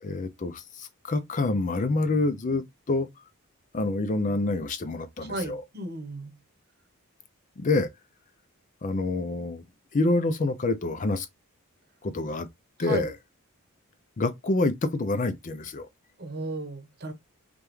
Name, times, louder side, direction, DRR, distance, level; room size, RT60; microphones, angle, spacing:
voice 1, 0.0-3.1 3.7-5.6 7.6-7.9 8.8-9.6 9.9-11.3 12.0-12.5 12.8-13.2 14.2-15.9, left 2 dB, 35° left, 0.4 m, -27 dB
voice 2, 5.3-6.3 12.8-13.1 16.2-17.1, right 2 dB, 45° right, 0.9 m, -34 dB
5.1 x 2.2 x 3.1 m
head